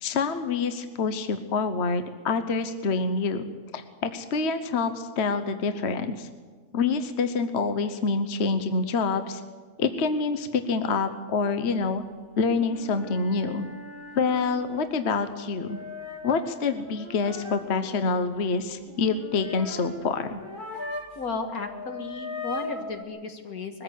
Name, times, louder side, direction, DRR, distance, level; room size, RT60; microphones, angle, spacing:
voice 1, 0.0-3.5 3.7-6.3 6.7-9.4 9.8-12.0 12.4-13.7 14.1-15.8 16.2-20.4, left 4 dB, 50° left, 9 dB, 1.2 m, -26 dB
sound 1, 12.4-21.3 21.5-23.0, left 2 dB, 35° left, 2.2 m, -40 dB
voice 2, 21.2-23.8, left 3 dB, 75° left, 5 dB, 2.2 m, -34 dB
21.5 x 15.0 x 8.3 m, 1.5 s
omnidirectional pair, 1.6 m